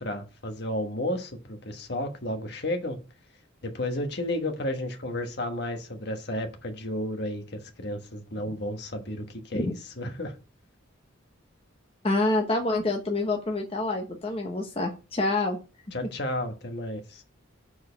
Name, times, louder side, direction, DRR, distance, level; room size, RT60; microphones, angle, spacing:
voice 1, 0.0-3.0 3.6-10.4 15.9-17.2, left 1 dB, 55° left, 1.4 m, -32 dB
voice 2, 12.0-15.6, left 2 dB, 30° left, 0.9 m, -27 dB
6.4 x 4.7 x 5.7 m
head